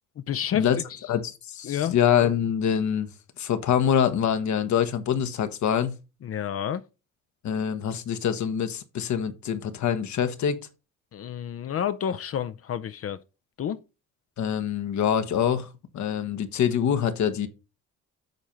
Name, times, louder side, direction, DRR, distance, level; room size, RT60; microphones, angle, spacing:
voice 1, 0.2-1.0 1.6-2.0 6.2-6.8 11.1-13.2 13.6-13.8, left 9 dB, 50° left, 0.6 m, -30 dB
voice 2, 1.1-3.1 3.4-5.9 7.4-10.6 14.4-17.5, left 8 dB, 70° left, 1.2 m, -25 dB
8.2 x 4.4 x 5.2 m
cardioid pair, 90°, 30 cm